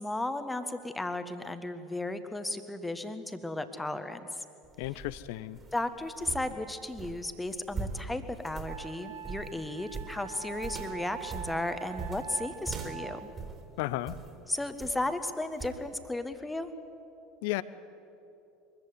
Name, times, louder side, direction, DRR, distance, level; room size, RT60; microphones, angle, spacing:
voice 1, 0.0-4.4 5.7-13.3 14.5-16.7, left 2 dB, 10° left, 9 dB, 1.5 m, -35 dB
sound 1, 4.6-14.3 14.8-15.1 15.6-15.8, right 5 dB, 30° right, 3.8 m, -42 dB
voice 2, 4.8-5.6 13.8-14.2 17.4-17.6, left 18 dB, 60° left, 17 dB, 0.7 m, -33 dB
Wind instrument woodwind instrument, 8.0-8.1 8.7-13.3, right 9 dB, 60° right, 1.9 m, -44 dB
22.5 x 14.5 x 9.7 m, 2.8 s
figure-of-eight pair, 70°, 0 cm